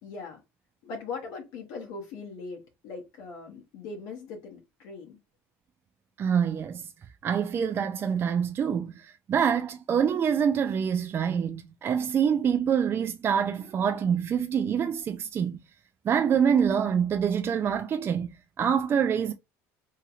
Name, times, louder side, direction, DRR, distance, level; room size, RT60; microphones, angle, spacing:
voice 1, 0.0-0.4 0.8-5.2, left 4 dB, 70° left, 0.7 m, -40 dB
voice 2, 6.2-6.9 7.2-15.6 16.0-18.3 18.6-19.3, right 7 dB, 35° right, 0.3 m, -26 dB
2.8 x 2.8 x 2.4 m
supercardioid pair, 85°, 7 cm